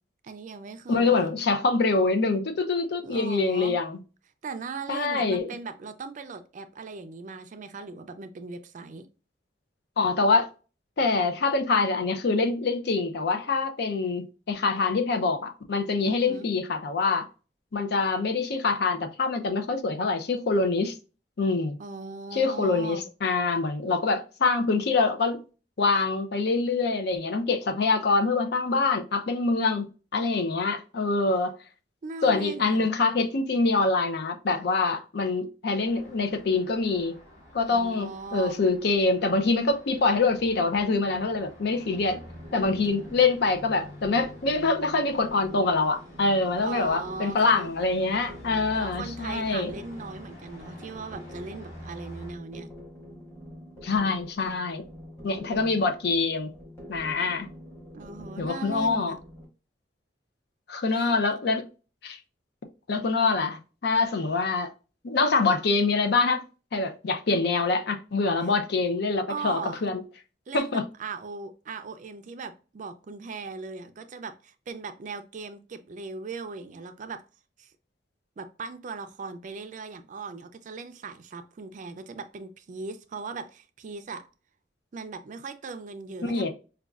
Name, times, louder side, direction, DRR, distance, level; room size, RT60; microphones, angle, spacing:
voice 1, 0.2-1.3 3.0-3.8 4.4-9.1 16.0-16.5 21.8-23.1 32.0-32.9 37.7-38.6 46.6-47.7 48.7-52.7 57.9-59.2 60.9-61.1 69.3-69.8 70.5-77.2 77.6-77.7 78.4-84.2 84.9-86.5, right 4 dB, 45° right, 0.4 m, -39 dB
voice 2, 0.9-4.0 4.9-5.6 10.0-10.5 11.0-17.3 17.7-21.0 21.4-21.8 22.3-25.4 25.8-31.5 32.2-37.1 37.5-42.2 42.5-49.7 53.8-54.8 55.2-56.5 56.9-57.5 58.4-59.1 60.7-61.6 62.0-62.2 62.9-64.7 65.0-66.4 66.7-70.0 70.5-70.8 86.3-86.5, left 3 dB, 65° left, 0.5 m, -25 dB
Traffic noise roadway noise, 35.8-52.3, equal, 40° left, 1.5 m, -48 dB
sound 1, 42.0-59.4, left 1 dB, 15° left, 1.3 m, -46 dB
5.0 x 2.3 x 2.3 m
head